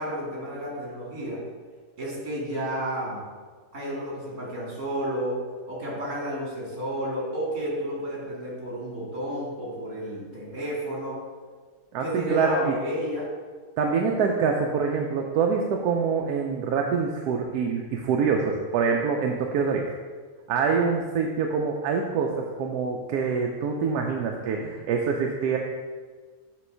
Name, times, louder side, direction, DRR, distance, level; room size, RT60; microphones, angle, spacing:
voice 1, 0.0-1.4 2.0-3.2 3.7-5.4 5.7-11.2 12.0-13.3, equal, 70° right, -5 dB, 2.7 m, -31 dB
voice 2, 11.9-12.8 13.8-19.9 20.5-25.6, right 5 dB, 90° right, 1 dB, 1.1 m, -25 dB
7.5 x 3.1 x 6.1 m, 1.5 s
omnidirectional pair, 1.6 m